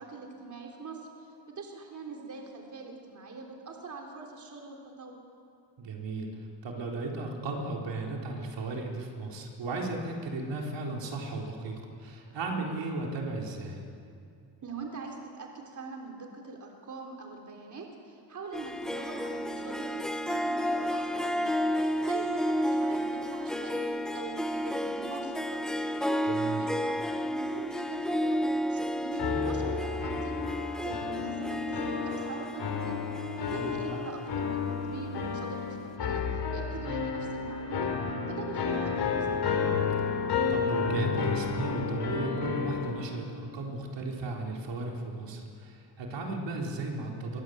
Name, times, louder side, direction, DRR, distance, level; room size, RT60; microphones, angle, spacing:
voice 1, 0.0-5.2 14.6-21.7 22.0-30.4 30.8-33.1 33.5-34.6 34.9-37.9 38.3-39.7, right 4 dB, 40° right, 1 dB, 3.6 m, -43 dB
voice 2, 5.8-6.3 6.6-13.8 26.3-26.6 33.5-34.0 40.4-47.4, right 2 dB, 75° right, 0 dB, 4.1 m, -35 dB
Harp, 18.5-35.3, equal, ahead, 1.2 m, -32 dB
sound 1, 29.2-42.9, left 5 dB, 65° left, 4.0 m, -31 dB
27.0 x 23.5 x 8.0 m, 2.4 s
wide cardioid pair, 155°, 43 cm